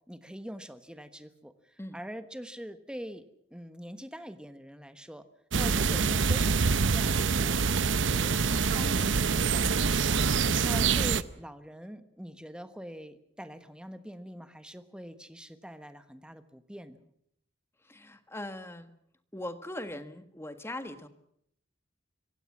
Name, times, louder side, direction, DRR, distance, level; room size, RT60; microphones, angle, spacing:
voice 1, 0.1-3.2 3.5-5.3 5.5-10.2 10.6-17.0, equal, 5° right, 10 dB, 1.3 m, -44 dB
sound 1, 5.5-11.2, right 5 dB, 75° right, 0.8 m, -25 dB
voice 2, 17.8-18.9 19.3-21.1, left 1 dB, 15° left, 9 dB, 1.5 m, -40 dB
25.5 x 16.5 x 7.3 m, 0.72 s
head